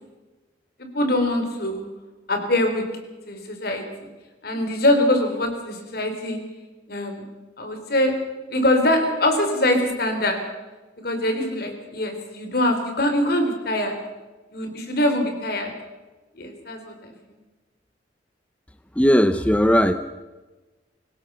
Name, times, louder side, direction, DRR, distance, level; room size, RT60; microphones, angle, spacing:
voice 1, 0.8-1.8 2.3-2.8 3.3-4.1 4.4-6.4 6.9-7.3 7.6-8.1 8.5-10.4 11.0-14.0 14.5-15.7 16.3-17.4, left 1 dB, 60° left, 5 dB, 4.2 m, -23 dB
voice 2, 19.0-19.9, equal, 5° left, 10 dB, 0.7 m, -17 dB
24.5 x 17.0 x 6.9 m, 1.2 s
head